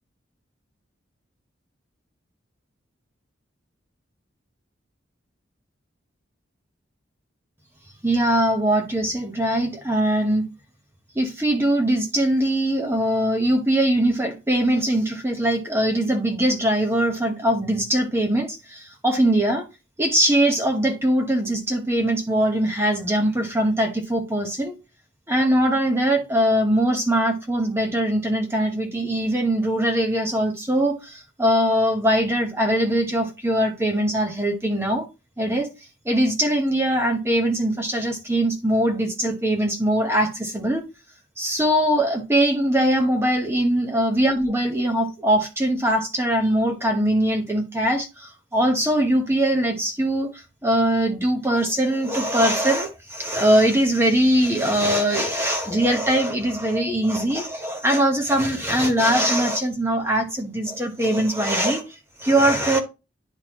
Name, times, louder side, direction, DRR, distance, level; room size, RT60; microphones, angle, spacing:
voice 1, 8.0-10.4 11.1-19.6 20.0-24.8 25.3-35.1 35.4-35.7 36.0-40.8 41.4-62.8, right 1 dB, 15° right, 1.1 m, -21 dB
10.5 x 3.9 x 3.0 m
head